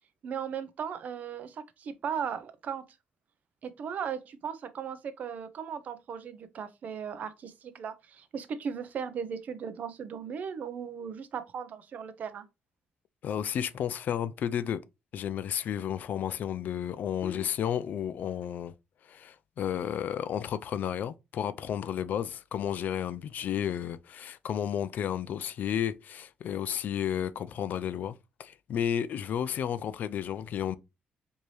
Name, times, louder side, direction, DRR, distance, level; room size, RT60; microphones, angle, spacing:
voice 1, 0.2-2.8 3.6-12.5, right 7 dB, 50° right, 0.5 m, -37 dB
voice 2, 13.2-14.8 15.1-18.7 19.1-28.1 28.4-30.8, left 9 dB, 55° left, 0.3 m, -32 dB
4.5 x 2.7 x 3.1 m
cardioid pair, 150°, 3 cm